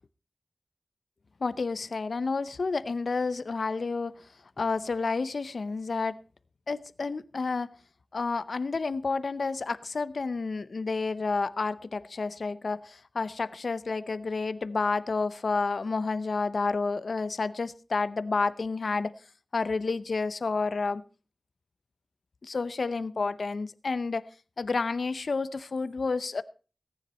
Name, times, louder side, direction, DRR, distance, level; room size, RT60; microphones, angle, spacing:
voice 1, 1.4-4.1 4.6-6.1 6.7-7.7 8.1-19.1 19.5-21.0 22.4-24.3 24.6-26.4, left 4 dB, 80° left, 16 dB, 0.6 m, -30 dB
17.5 x 9.8 x 4.2 m, 0.37 s
wide cardioid pair, 80°, 0 cm